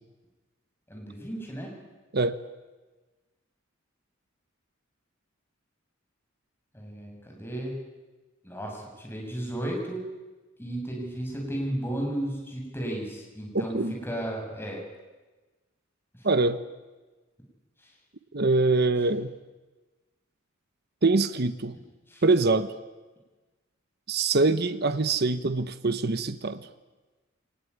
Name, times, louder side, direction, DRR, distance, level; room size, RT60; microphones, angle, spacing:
voice 1, 0.9-1.7 6.7-7.8 8.4-10.0 10.6-13.8 14.0-14.8 22.1-22.2, right 1 dB, 10° left, -1 dB, 6.8 m, -34 dB
voice 2, 13.5-13.9 16.2-16.6 18.3-19.3 21.0-21.8 22.2-22.7 24.1-26.7, right 3 dB, 50° right, 11 dB, 1.0 m, -24 dB
24.0 x 19.5 x 9.5 m, 1.2 s
head